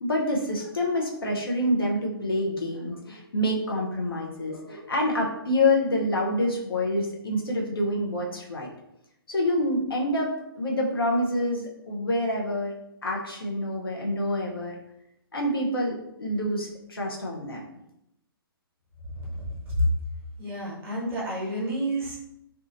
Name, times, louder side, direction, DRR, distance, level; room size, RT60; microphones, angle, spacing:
voice 1, 0.0-8.7 9.3-12.7 13.0-14.8 15.3-17.6, left 1 dB, 70° left, -1 dB, 0.7 m, -27 dB
voice 2, 20.4-22.2, equal, 20° right, -5 dB, 0.9 m, -29 dB
2.8 x 2.3 x 2.5 m, 0.80 s
figure-of-eight pair, 125°, 13 cm